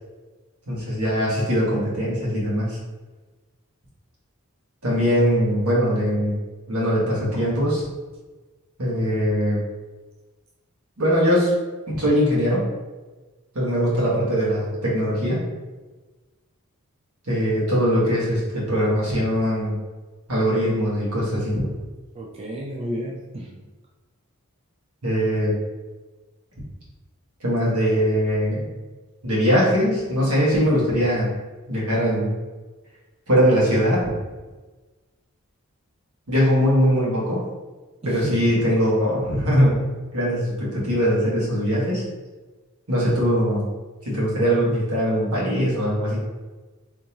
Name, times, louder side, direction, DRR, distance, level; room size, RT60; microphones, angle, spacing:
voice 1, 0.7-2.8 4.8-6.4 6.7-7.8 8.8-9.6 11.0-11.5 11.9-12.6 13.5-15.4 17.2-19.8 20.3-21.7 25.0-25.6 27.4-28.7 29.2-31.3 31.7-32.3 33.3-34.0 36.3-37.4 38.0-39.9 40.1-42.0 42.9-43.7 44.0-46.2, equal, 80° right, -6 dB, 1.4 m, -21 dB
voice 2, 22.1-23.5 38.0-38.5, right 1 dB, 25° right, -2 dB, 0.3 m, -31 dB
3.6 x 2.8 x 2.9 m, 1.2 s
head